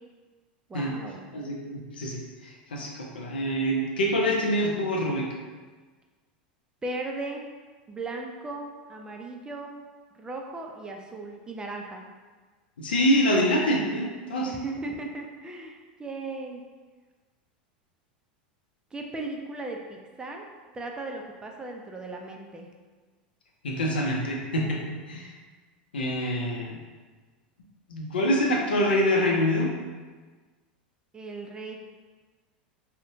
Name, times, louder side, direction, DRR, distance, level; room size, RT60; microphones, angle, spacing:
voice 1, 0.7-1.2 6.8-7.4 7.9-9.8 10.1-12.0 14.4-16.6 18.9-20.5 20.7-22.7 24.6-24.8 31.1-31.8, right 2 dB, 15° right, 1 dB, 0.4 m, -37 dB
voice 2, 1.3-5.3 12.8-14.5 23.6-25.3 25.9-26.8 27.9-29.7, equal, 90° left, -1 dB, 0.5 m, -26 dB
2.6 x 2.1 x 2.7 m, 1.4 s
hypercardioid pair, 95°, 5 cm